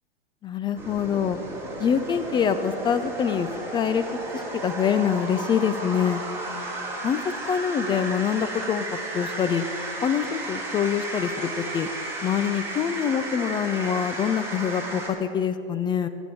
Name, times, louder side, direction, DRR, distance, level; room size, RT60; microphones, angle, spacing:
voice 1, 0.4-1.4 1.8-3.5 3.7-4.0 4.3-6.2 7.0-8.9 9.1-9.6 10.0-11.9 12.2-16.1, left 7 dB, 15° left, 11 dB, 0.3 m, -25 dB
sound 1, 0.8-15.1, right 2 dB, 5° right, 3.2 m, -34 dB
16.5 x 7.0 x 7.6 m, 2.8 s
hypercardioid pair, 110°, 31 cm